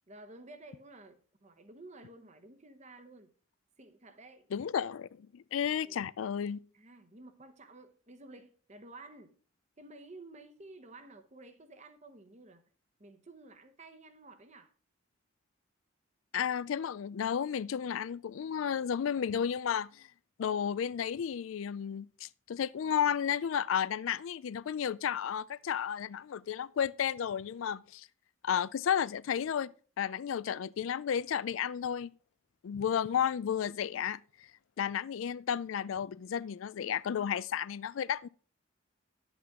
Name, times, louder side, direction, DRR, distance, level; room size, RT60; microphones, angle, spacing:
voice 1, 0.1-3.3 3.8-4.5 5.8-6.0 6.7-9.4 9.8-12.6 13.0-14.7, right 2 dB, 35° right, 1.0 m, -52 dB
voice 2, 4.5-6.6 16.3-20.1 20.4-28.1 28.4-29.7 30.0-32.1 32.6-34.2 34.8-38.3, left 8 dB, 80° left, 0.4 m, -32 dB
11.0 x 8.1 x 3.6 m
head